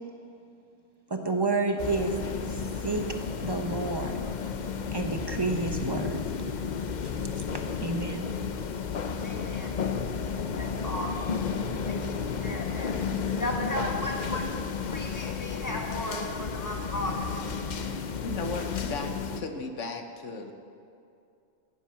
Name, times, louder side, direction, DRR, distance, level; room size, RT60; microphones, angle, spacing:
voice 1, 1.1-2.1 2.5-3.0 3.4-4.2 4.9-6.2 7.0-7.1 7.8-8.3, right 3 dB, 20° right, 4 dB, 0.9 m, -30 dB
sound 1, 1.8-19.4, left 6 dB, 45° left, 0.7 m, -32 dB
voice 2, 9.2-9.7 10.6-11.3 11.9-12.0 12.3-12.9 13.4-14.4 14.9-17.1, left 1 dB, 15° left, -1 dB, 1.7 m, -35 dB
voice 3, 18.2-20.5, left 3 dB, 75° left, 6 dB, 1.4 m, -35 dB
16.5 x 10.0 x 5.8 m, 2.5 s
omnidirectional pair, 1.3 m